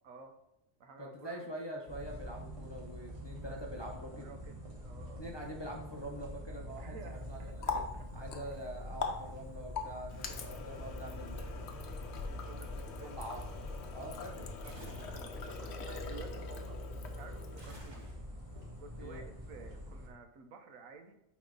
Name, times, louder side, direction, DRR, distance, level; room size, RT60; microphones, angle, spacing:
voice 1, 0.0-0.4 0.8-1.5 4.1-4.5 4.8-5.3 6.8-8.1 8.4-8.6 10.3-10.9 12.3-13.2 14.6-18.1 18.8-21.2, right 4 dB, 80° right, 6 dB, 1.2 m, -53 dB
voice 2, 1.0-4.3 5.2-7.0 7.2-7.4 7.7-7.8 8.1-11.8 12.7-13.4 13.9-14.5 19.0-19.3, equal, 30° left, -1 dB, 0.5 m, -45 dB
sound 1, 1.9-20.1, equal, 25° right, 1.2 m, -46 dB
Water tap faucet, 7.1-17.9, left 5 dB, 60° left, 0.9 m, -43 dB
sound 2, 14.6-15.3 17.6-18.5, right 2 dB, 60° right, 2.2 m, -52 dB
8.5 x 3.1 x 3.8 m, 0.79 s
omnidirectional pair, 1.4 m